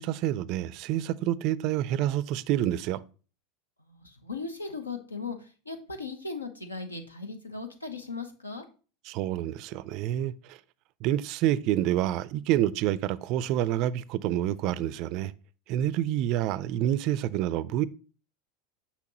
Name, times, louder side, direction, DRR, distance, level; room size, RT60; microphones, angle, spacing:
voice 1, 0.0-3.0 9.1-10.6 11.0-15.3 15.7-17.9, right 12 dB, 50° right, 0.3 m, -28 dB
voice 2, 3.8-8.6, left 4 dB, 90° left, 0.8 m, -38 dB
5.9 x 5.8 x 2.8 m
figure-of-eight pair, 80°, 0 cm